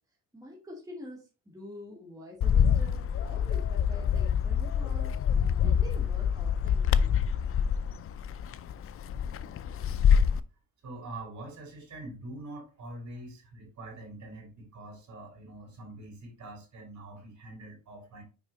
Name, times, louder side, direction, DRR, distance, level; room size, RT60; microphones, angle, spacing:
voice 1, 0.3-5.1 5.6-7.2, left 1 dB, 10° right, -3 dB, 2.2 m, -46 dB
Bird, 2.4-10.4, left 7 dB, 40° left, 0.4 m, -26 dB
voice 2, 10.8-18.2, right 2 dB, 50° right, 0 dB, 4.2 m, -44 dB
6.4 x 4.7 x 4.0 m, 0.32 s
cardioid pair, 120°, 36 cm